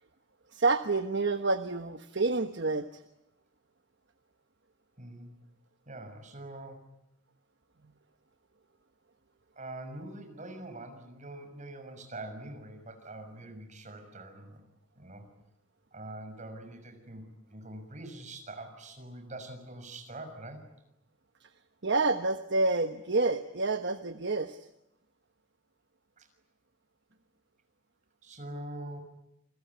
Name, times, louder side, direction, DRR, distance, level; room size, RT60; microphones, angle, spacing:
voice 1, 0.5-3.0 21.8-24.7, right 3 dB, 60° right, 8 dB, 1.2 m, -28 dB
voice 2, 5.0-5.3 5.9-6.9 9.6-14.6 15.0-15.2 15.9-20.6 26.2-26.3 28.2-29.0, right 1 dB, 35° right, 6 dB, 6.4 m, -44 dB
28.5 x 21.5 x 9.6 m, 0.82 s
head